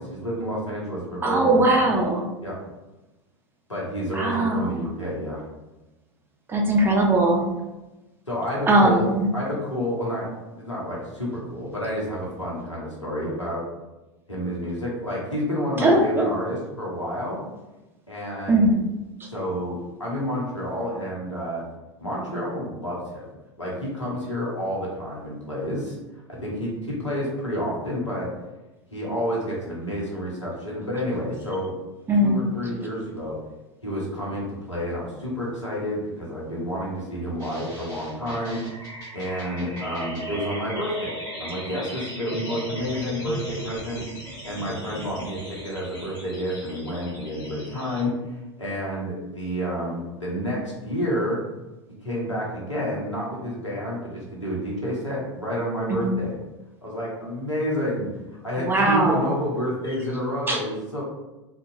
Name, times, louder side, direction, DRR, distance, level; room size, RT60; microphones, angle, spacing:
voice 1, 0.0-1.9 2.4-2.5 3.7-5.4 8.3-9.0 9.3-13.6 14.3-17.4 18.1-18.7 19.3-21.6 22.0-23.2 23.6-25.9 26.3-28.3 28.9-31.7 32.2-33.4 33.8-44.0 44.4-48.1 48.6-51.4 52.0-56.4 56.8-58.1 58.4-61.0, equal, 90° left, -5 dB, 0.8 m, -29 dB
voice 2, 1.2-2.2 4.1-4.8 6.5-7.4 8.7-9.3 15.8-16.3 18.5-18.7 32.1-32.4 55.9-56.1 58.6-59.3 60.5-60.6, right 1 dB, 15° right, 0 dB, 0.4 m, -20 dB
sound 1, 37.4-48.0, equal, 25° left, 1.3 m, -37 dB
2.5 x 2.2 x 2.7 m, 1.0 s
figure-of-eight pair, 85°, 15 cm